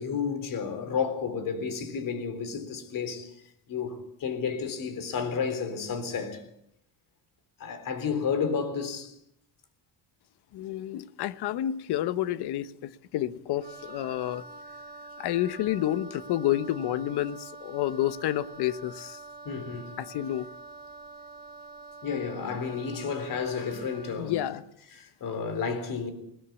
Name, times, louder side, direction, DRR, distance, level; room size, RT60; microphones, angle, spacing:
voice 1, 0.0-3.3 3.7-6.4 7.6-9.1 19.5-20.0 22.0-24.3 25.0-26.1, left 6 dB, 50° left, 3.8 m, -31 dB
voice 2, 10.5-14.4 15.2-19.2 20.0-20.5 24.2-24.6, left 13 dB, 70° left, 1.1 m, -29 dB
Wind instrument woodwind instrument, 13.6-24.2, right 3 dB, 20° right, 3.0 m, -46 dB
21.0 x 17.5 x 8.3 m
cardioid pair, 155°, 41 cm